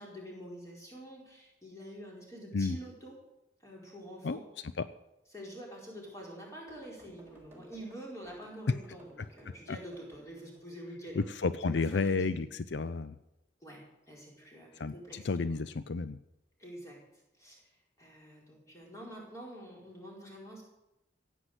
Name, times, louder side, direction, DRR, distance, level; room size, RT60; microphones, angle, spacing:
voice 1, 0.0-3.1 3.6-4.4 5.3-11.2 11.6-12.4 13.6-15.3 16.6-17.0 17.4-17.7 18.0-20.6, equal, 15° left, -2 dB, 4.6 m, -47 dB
sound 1, 6.7-10.6 14.1-14.5 15.6-15.7, right 1 dB, 10° right, 3.7 m, -59 dB
voice 2, 9.5-9.8 11.2-13.2 14.7-16.2, left 4 dB, 70° left, 14 dB, 0.5 m, -32 dB
16.0 x 9.2 x 8.0 m, 0.94 s
head